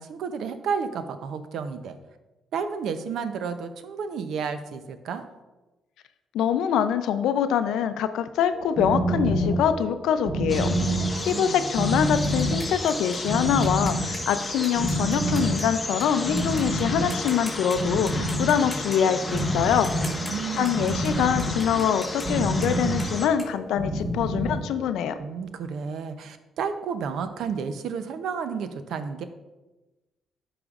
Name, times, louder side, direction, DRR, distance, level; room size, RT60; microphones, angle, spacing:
voice 1, 0.0-2.0 2.5-5.3 10.8-11.6 19.9-20.9 25.2-29.2, right 6 dB, 75° right, 10 dB, 0.6 m, -32 dB
voice 2, 6.3-10.7 11.3-19.9 20.6-25.1, left 8 dB, 85° left, 10 dB, 0.4 m, -24 dB
sound 1, 8.5-25.2, right 1 dB, 40° right, 2.4 m, -28 dB
sound 2, 10.5-23.3, left 2 dB, 20° left, 0.9 m, -34 dB
sound 3, 11.2-16.0 16.4-16.8 17.1-17.8 18.1-21.1 21.4-24.4, left 1 dB, 5° right, 2.6 m, -44 dB
12.0 x 5.0 x 2.4 m, 1.1 s
cardioid pair, 90°, 0 cm